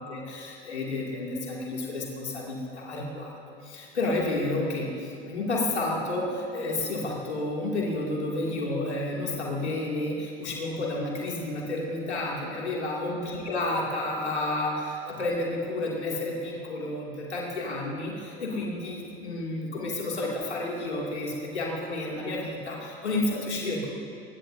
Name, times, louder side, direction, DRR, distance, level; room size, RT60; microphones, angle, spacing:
voice 1, 0.0-23.9, left 2 dB, 80° left, -3 dB, 2.7 m, -31 dB
22.5 x 20.0 x 2.7 m, 2.6 s
figure-of-eight pair, 75°, 33 cm